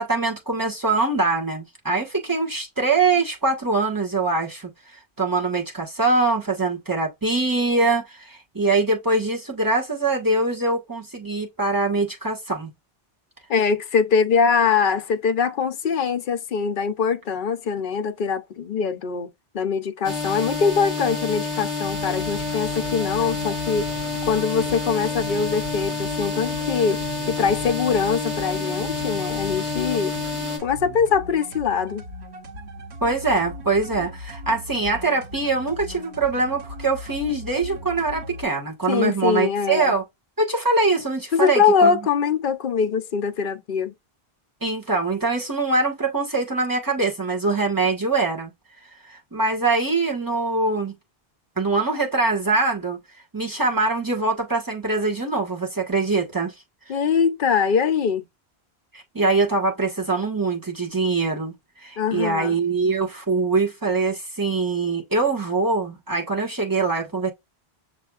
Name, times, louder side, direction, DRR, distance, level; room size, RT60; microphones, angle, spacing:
voice 1, 0.0-4.7 5.2-12.7 33.0-40.0 40.4-41.9 44.6-48.5 49.1-51.0 51.6-53.0 53.3-56.5 58.9-67.3, right 3 dB, 20° right, 1.6 m, -23 dB
voice 2, 13.5-23.9 24.3-30.1 30.6-32.0 38.9-39.9 41.3-43.9 56.9-58.2 62.0-62.6, left 6 dB, 55° left, 0.8 m, -22 dB
sound 1, 20.0-30.6, left 4 dB, 45° right, 2.5 m, -28 dB
sound 2, 21.8-38.4, equal, 90° right, 1.4 m, -38 dB
6.4 x 3.0 x 2.4 m
omnidirectional pair, 1.1 m